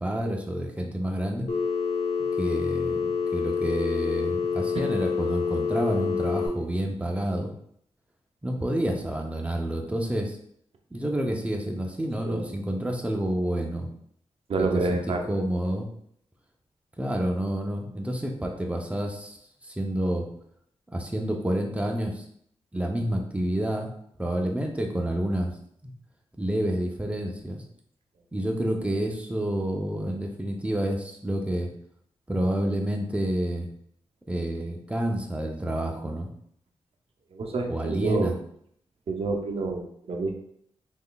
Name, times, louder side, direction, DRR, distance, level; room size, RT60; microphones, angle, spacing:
voice 1, 0.0-1.5 2.4-7.5 8.4-10.4 10.9-13.9 14.6-15.0 15.3-15.9 17.0-20.3 20.9-22.2 22.7-23.9 24.2-25.5 25.8-25.9 26.4-27.6 28.3-31.7 32.3-33.7 34.3-36.3 37.7-38.4, right 1 dB, 10° right, 2 dB, 0.6 m, -29 dB
Telephone, 1.5-6.5, left 6 dB, 75° left, 1.0 m, -27 dB
voice 2, 14.5-15.2 37.3-38.4 39.1-40.4, right 3 dB, 60° right, 3 dB, 0.6 m, -28 dB
3.7 x 3.3 x 2.3 m, 0.69 s
cardioid pair, 55°, 11 cm